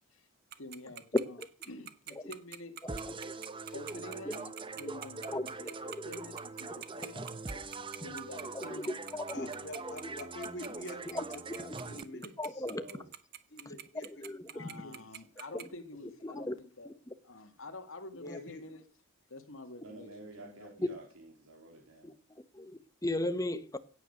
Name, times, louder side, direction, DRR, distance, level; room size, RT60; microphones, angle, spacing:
Tick-tock, 0.5-15.6, right 10 dB, 50° right, 1.3 m, -44 dB
voice 1, 0.6-1.4 1.7-2.8 3.7-7.2 8.0-9.7 14.5-16.9 17.2-18.8 19.3-20.1 20.4-20.9, left 2 dB, 75° left, 2.3 m, -48 dB
sound 1, 2.9-12.0, right 3 dB, 25° right, 0.9 m, -43 dB
voice 2, 5.3-6.0 8.5-9.5 9.8-10.2 11.1-11.2 11.6-11.7 12.4-12.8 14.0-14.7 16.2-16.6 16.9-17.0 20.8-20.9 22.0-22.1 22.5-23.8, left 1 dB, 15° left, 1.2 m, -35 dB
voice 3, 9.3-12.6 13.5-14.2 14.7-15.0 18.2-18.6, left 1 dB, 55° left, 3.8 m, -46 dB
voice 4, 12.6-13.1 19.8-22.2, right 2 dB, 90° right, 3.6 m, -51 dB
17.0 x 9.4 x 6.6 m
head